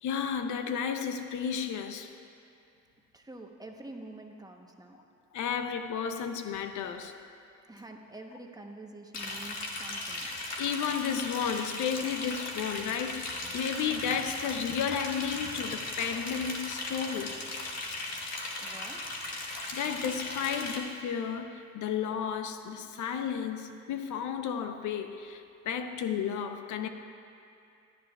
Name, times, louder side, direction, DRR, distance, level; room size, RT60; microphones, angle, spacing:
voice 1, 0.0-2.1 5.3-7.1 10.6-17.4 19.7-26.9, left 7 dB, 75° left, 7 dB, 0.7 m, -33 dB
voice 2, 3.1-5.0 7.7-10.3 18.6-19.0, right 2 dB, 10° right, 2 dB, 1.0 m, -47 dB
Liquid, 9.1-20.8, left 2 dB, 60° left, 1.5 m, -37 dB
17.5 x 11.5 x 2.4 m, 2.5 s
cardioid pair, 90°, 30 cm